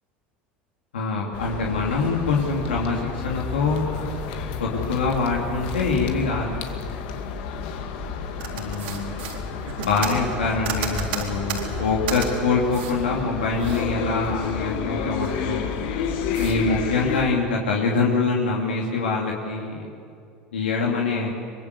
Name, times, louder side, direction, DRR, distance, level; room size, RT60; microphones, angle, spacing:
voice 1, 0.9-3.9 4.6-6.5 8.5-9.1 9.8-15.7 16.4-19.8 20.5-21.3, left 4 dB, 90° left, -2 dB, 3.0 m, -24 dB
sound 1, 1.3-17.2, left 6 dB, 70° left, 2.4 m, -31 dB
sound 2, 8.4-12.3 12.7-13.0 13.3-14.7 15.0-15.8 16.3-16.6, right 6 dB, 80° right, 4.1 m, -33 dB
23.5 x 22.5 x 8.2 m, 2.4 s
hypercardioid pair, 85°, 6 cm